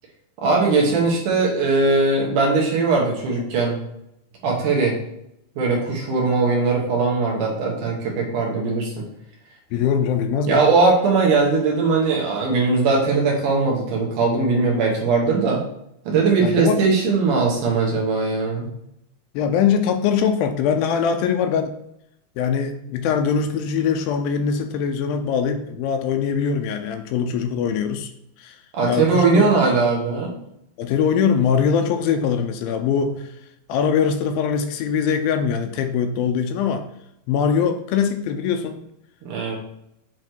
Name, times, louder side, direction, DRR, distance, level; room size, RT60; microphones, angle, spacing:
voice 1, 0.4-3.8 4.4-5.0 5.6-9.1 10.5-15.6 16.1-18.7 28.7-30.3 39.2-39.6, right 4 dB, 65° right, -1 dB, 2.5 m, -20 dB
voice 2, 9.7-10.6 16.4-16.8 19.3-21.7 22.4-28.1 28.4-28.6 28.9-29.4 30.8-33.2 33.7-36.9 37.3-38.8, left 7 dB, 80° left, 6 dB, 2.3 m, -22 dB
7.7 x 3.2 x 4.4 m, 0.79 s
omnidirectional pair, 4.3 m